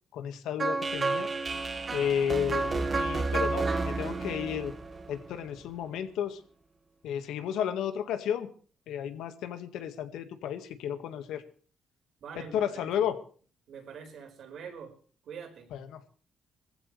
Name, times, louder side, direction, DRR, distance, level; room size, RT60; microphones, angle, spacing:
voice 1, 0.1-1.3 1.9-4.7 5.1-6.4 7.0-8.5 8.9-11.4 12.5-13.2 15.7-16.0, left 9 dB, 85° left, 8 dB, 1.9 m, -32 dB
sound 1, 0.6-5.6, right 3 dB, 35° right, 2.0 m, -31 dB
voice 2, 12.2-12.9 13.7-14.9 15.2-15.7, right 6 dB, 70° right, 4 dB, 5.1 m, -44 dB
20.0 x 15.5 x 3.4 m, 0.41 s
cardioid pair, 90°, 0 cm